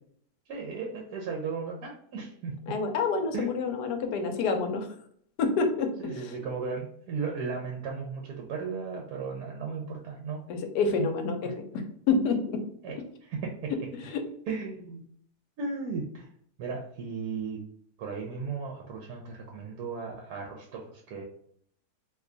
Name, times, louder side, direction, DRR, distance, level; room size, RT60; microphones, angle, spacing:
voice 1, 0.5-2.5 3.3-3.5 6.0-10.4 10.9-11.1 11.4-11.5 12.8-13.7 14.5-15.0 15.6-16.3 16.6-17.6 18.0-21.2, right 5 dB, 75° right, 0 dB, 1.1 m, -36 dB
voice 2, 2.7-4.9 5.4-6.3 10.5-12.4 13.9-14.2, left 4 dB, 85° left, 5 dB, 1.2 m, -28 dB
2.9 x 2.3 x 3.7 m, 0.63 s
omnidirectional pair, 1.7 m